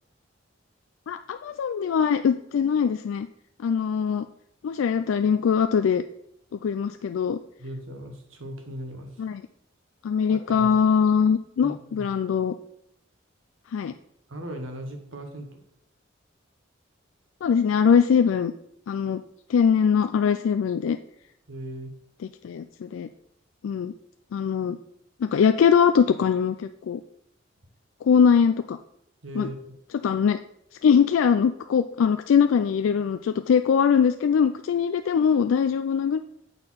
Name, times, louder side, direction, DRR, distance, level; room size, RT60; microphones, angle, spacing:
voice 1, 1.1-3.3 3.6-4.3 4.6-6.0 6.5-7.4 9.2-9.4 10.0-12.5 13.7-13.9 17.4-18.5 18.9-19.2 19.5-21.0 22.4-23.1 23.6-23.9 24.3-24.8 25.2-27.0 28.0-28.8 29.4-29.5 30.0-30.4 30.8-36.2, left 7 dB, 85° left, 9 dB, 0.3 m, -22 dB
voice 2, 7.6-9.1 10.3-10.7 11.6-12.1 14.3-15.6 21.5-21.9 29.2-29.7, right 1 dB, 85° right, 4 dB, 1.3 m, -38 dB
6.9 x 4.3 x 5.6 m, 0.76 s
head